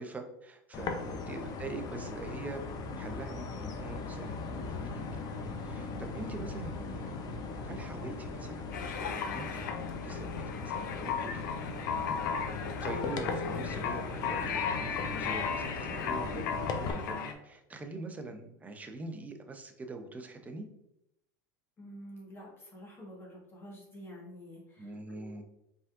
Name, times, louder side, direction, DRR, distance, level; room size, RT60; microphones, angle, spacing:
voice 1, 0.0-2.6 3.0-5.2 5.6-7.1 7.6-9.7 10.0-11.7 12.8-20.7 24.8-25.4, right 3 dB, 15° right, 5 dB, 0.7 m, -44 dB
sound 1, 0.7-16.9, left 4 dB, 40° left, 0.7 m, -39 dB
voice 2, 0.8-1.2 21.8-25.4, equal, 25° left, -3 dB, 1.5 m, -49 dB
sound 2, 8.7-17.3, left 6 dB, 80° left, 0.7 m, -36 dB
5.3 x 3.6 x 2.5 m, 0.83 s
supercardioid pair, 120°, 10 cm